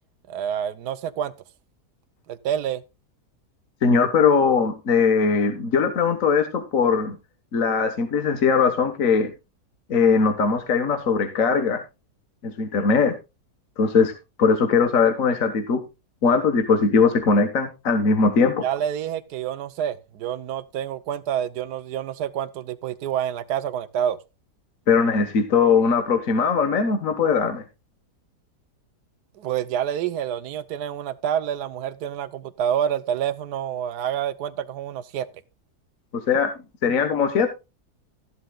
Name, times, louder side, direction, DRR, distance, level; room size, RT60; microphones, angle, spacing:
voice 1, 0.3-1.3 2.3-2.8 18.6-24.2 29.4-35.3, right 9 dB, 85° right, 1.3 m, -28 dB
voice 2, 3.8-7.2 7.5-9.3 9.9-11.8 12.4-13.2 13.8-14.1 14.4-15.8 16.2-18.6 24.9-27.6 36.1-36.5 36.8-37.5, left 5 dB, 55° left, 1.7 m, -20 dB
14.5 x 11.5 x 2.3 m
omnidirectional pair, 1.7 m